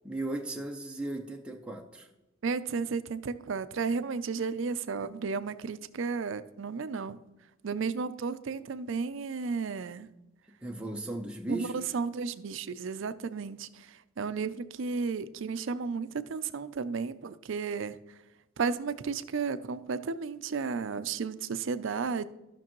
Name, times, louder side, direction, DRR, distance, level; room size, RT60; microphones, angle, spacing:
voice 1, 0.0-2.1 10.6-11.7, right 2 dB, 5° right, 1 dB, 0.6 m, -36 dB
voice 2, 2.4-7.2 7.6-10.1 11.5-18.0 18.6-22.3, right 5 dB, 65° right, 13 dB, 0.4 m, -33 dB
14.5 x 6.0 x 3.0 m, 0.99 s
head